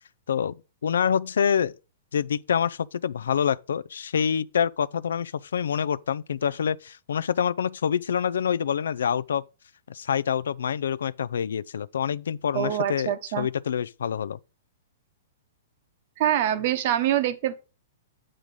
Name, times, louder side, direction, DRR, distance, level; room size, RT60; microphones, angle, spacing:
voice 1, 0.8-1.7 2.1-9.4 9.9-14.4, left 8 dB, 85° left, 0.4 m, -26 dB
voice 2, 12.5-13.5 16.2-17.5, right 11 dB, 50° right, 1.0 m, -25 dB
8.7 x 4.0 x 4.7 m
hypercardioid pair, 145°, 0 cm